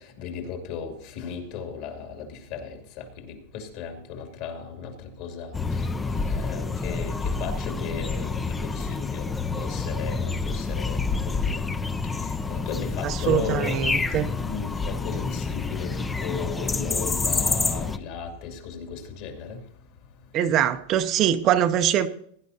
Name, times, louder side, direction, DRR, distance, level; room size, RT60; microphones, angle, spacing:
voice 1, 0.2-5.5 6.0-9.3 9.6-11.4 12.2-13.8 14.3-19.6, left 6 dB, 50° left, 5 dB, 2.5 m, -36 dB
sound 1, 5.5-18.0, left 4 dB, 10° left, 0.5 m, -28 dB
voice 2, 13.0-14.3 20.3-22.1, right 10 dB, 30° right, 9 dB, 0.6 m, -23 dB
18.0 x 11.0 x 2.8 m, 0.66 s
supercardioid pair, 165°, 0 cm